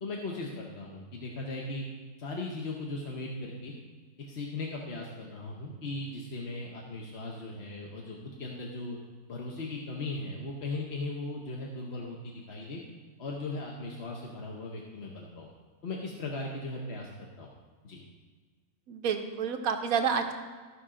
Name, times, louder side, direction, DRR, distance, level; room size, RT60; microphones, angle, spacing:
voice 1, 0.0-1.9 2.2-3.7 4.3-9.0 9.3-12.8 13.2-15.5 15.8-17.1 17.4-17.5 17.8-18.0, left 2 dB, 50° left, -2 dB, 1.1 m, -38 dB
voice 2, 18.9-20.3, right 6 dB, 70° right, 6 dB, 1.1 m, -29 dB
14.0 x 5.4 x 3.7 m, 1.4 s
omnidirectional pair, 1.6 m